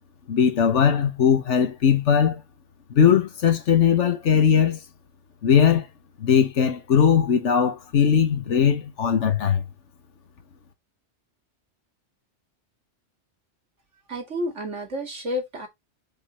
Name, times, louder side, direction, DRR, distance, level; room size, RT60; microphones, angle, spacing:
voice 1, 0.3-2.4 2.9-4.8 5.4-5.9 6.2-9.6, left 7 dB, 85° left, 1.4 m, -19 dB
voice 2, 14.1-15.7, left 1 dB, 90° right, 2.9 m, -30 dB
5.4 x 5.2 x 4.3 m
omnidirectional pair, 1.2 m